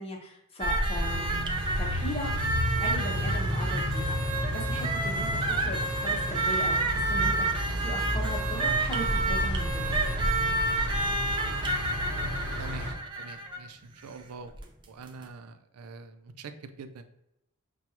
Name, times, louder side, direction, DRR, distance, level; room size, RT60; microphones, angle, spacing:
voice 1, 0.0-1.5 1.8-2.3 2.8-4.2 4.5-7.5 7.8-10.0, left 1 dB, 25° left, -1 dB, 0.8 m, -38 dB
sound 1, 0.6-13.7 14.5-14.6 15.1-15.2, right 2 dB, 20° right, 0.4 m, -29 dB
sound 2, 1.0-12.9, equal, 50° right, 1.2 m, -32 dB
voice 2, 13.2-14.5 14.9-17.0, right 3 dB, 85° right, 9 dB, 0.4 m, -44 dB
6.0 x 2.3 x 2.8 m, 0.85 s
head